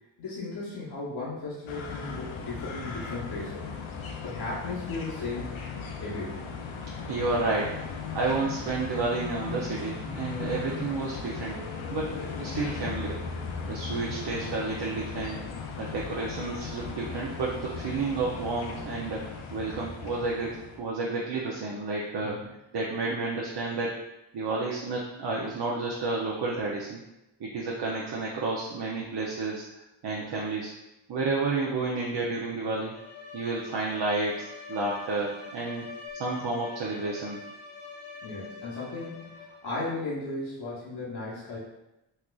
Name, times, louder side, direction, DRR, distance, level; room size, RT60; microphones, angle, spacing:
voice 1, 0.2-3.6 4.2-5.5 6.0-6.4 22.2-22.5 38.2-41.6, left 3 dB, 55° left, -7 dB, 1.0 m, -36 dB
sound 1, 1.7-20.8, left 5 dB, 85° left, 0.5 m, -37 dB
voice 2, 7.1-7.8 8.1-11.6 11.9-12.1 12.4-13.2 13.7-15.4 15.8-22.4 22.7-23.9 24.3-27.0 27.4-29.7 30.0-30.7 31.1-32.9 33.3-35.9 36.1-37.4, right 3 dB, 60° right, -3 dB, 0.6 m, -31 dB
Bowed string instrument, 32.7-39.8, left 4 dB, 25° left, 0.6 m, -45 dB
4.2 x 2.4 x 2.3 m, 0.91 s
cardioid pair, 80°, 47 cm